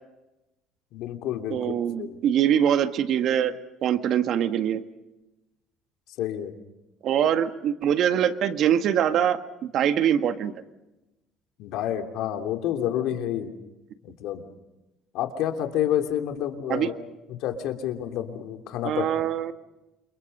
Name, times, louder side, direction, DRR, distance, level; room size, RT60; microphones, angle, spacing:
voice 1, 0.9-2.2 6.2-6.5 7.3-7.4 11.6-13.5 14.0-14.4 15.1-16.9 17.3-19.1, left 11 dB, 75° left, 5 dB, 3.0 m, -29 dB
voice 2, 1.5-3.6 3.8-4.8 7.0-10.5 16.7-16.9 18.8-19.5, right 9 dB, 55° right, 9 dB, 1.7 m, -23 dB
29.0 x 28.0 x 5.5 m, 0.97 s
cardioid pair, 130°, 0 cm